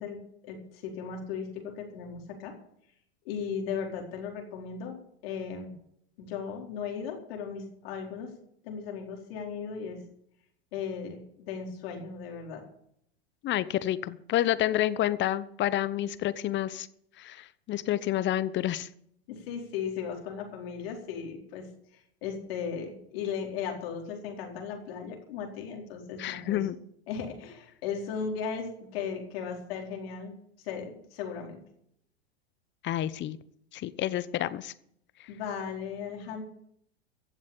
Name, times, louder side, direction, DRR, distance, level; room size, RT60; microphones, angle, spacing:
voice 1, 0.0-2.5 3.2-5.0 5.2-5.7 6.2-8.3 8.6-10.0 10.7-12.6 19.3-21.7 21.9-26.7 27.1-30.3 30.6-31.6 35.3-36.4, left 6 dB, 65° left, 2 dB, 4.5 m, -36 dB
voice 2, 13.4-16.9 17.2-18.9 26.2-26.8 32.8-33.4 33.7-34.7, left 13 dB, 35° left, 15 dB, 1.0 m, -29 dB
16.0 x 7.4 x 8.6 m, 0.70 s
hypercardioid pair, 100°, 32 cm